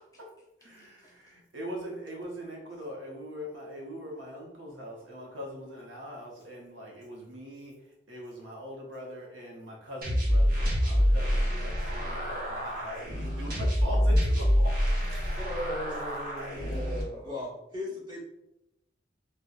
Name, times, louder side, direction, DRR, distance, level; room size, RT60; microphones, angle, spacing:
voice 1, 0.6-7.7 8.1-15.4, equal, 80° right, -1 dB, 0.8 m, -42 dB
sound 1, 10.0-17.0, equal, 50° right, 1.0 m, -26 dB
voice 2, 15.4-17.4, right 1 dB, 20° left, -3 dB, 0.7 m, -38 dB
voice 3, 17.2-18.2, left 3 dB, 20° right, -6 dB, 1.0 m, -37 dB
4.1 x 2.1 x 2.4 m, 0.87 s
head